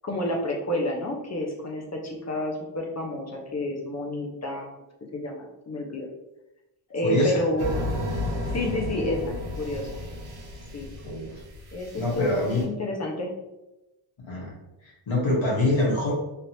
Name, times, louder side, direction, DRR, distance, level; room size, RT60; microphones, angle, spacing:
voice 1, 0.0-4.7 5.1-6.1 6.9-7.8 8.5-10.0 10.7-11.0 11.7-11.9 12.1-13.3, left 1 dB, 30° left, 0 dB, 0.9 m, -30 dB
voice 2, 7.0-7.4 11.0-11.4 12.0-12.6 14.3-14.5 14.8-16.1, left 1 dB, 70° left, -4 dB, 1.5 m, -25 dB
sound 1, 7.6-12.6, left 2 dB, 55° right, 1.0 m, -33 dB
3.4 x 2.8 x 2.8 m, 0.97 s
cardioid pair, 55°, 49 cm